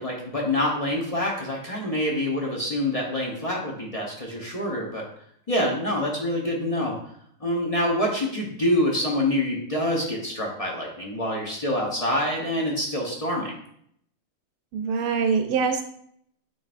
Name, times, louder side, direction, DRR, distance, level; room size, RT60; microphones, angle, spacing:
voice 1, 0.0-5.1 5.5-7.0 7.4-13.5, left 1 dB, 50° left, -2 dB, 0.4 m, -26 dB
voice 2, 14.7-15.8, right 5 dB, 85° right, 5 dB, 1.7 m, -24 dB
9.5 x 4.0 x 2.5 m, 0.68 s
omnidirectional pair, 2.3 m